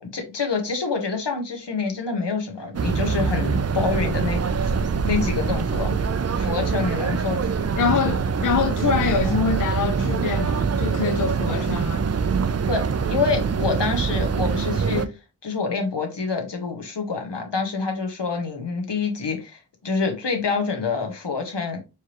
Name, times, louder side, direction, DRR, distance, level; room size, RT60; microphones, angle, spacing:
voice 1, 0.1-4.4 5.0-5.9 6.4-7.4 7.9-8.2 9.2-9.3 11.5-11.6 12.7-15.1 15.4-21.8, left 4 dB, 75° left, 1.2 m, -27 dB
sound 1, 2.7-15.1, right 5 dB, 40° right, 0.4 m, -24 dB
voice 2, 7.8-12.1, left 5 dB, 50° left, 0.5 m, -24 dB
4.6 x 3.3 x 2.9 m
wide cardioid pair, 50°, 42 cm